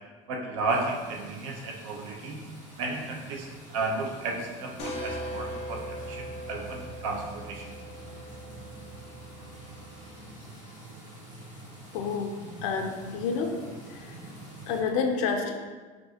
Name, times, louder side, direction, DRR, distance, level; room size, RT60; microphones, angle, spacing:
voice 1, 0.3-2.4 2.8-7.7, right 3 dB, 80° right, 1 dB, 0.8 m, -33 dB
sound 1, 0.7-14.8, right 2 dB, 25° right, 1.4 m, -46 dB
sound 2, 4.8-10.2, equal, 35° left, 0.8 m, -40 dB
voice 2, 11.9-12.3 12.6-13.5 13.9-14.2 14.7-15.5, left 5 dB, 80° left, 3 dB, 0.6 m, -29 dB
5.2 x 2.6 x 2.8 m, 1.4 s
cardioid pair, 175°, 17 cm